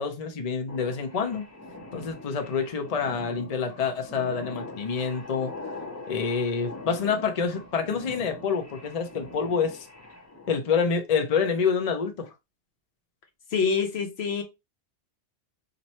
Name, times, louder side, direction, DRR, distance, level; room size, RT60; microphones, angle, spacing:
voice 1, 0.0-1.5 1.9-5.5 6.1-9.9 10.5-12.3, left 6 dB, 40° left, 0.6 m, -27 dB
sound 1, 0.7-10.6, left 2 dB, 15° left, 0.9 m, -42 dB
voice 2, 13.5-14.4, left 5 dB, 70° left, 1.1 m, -26 dB
3.1 x 2.6 x 4.1 m
omnidirectional pair, 1.1 m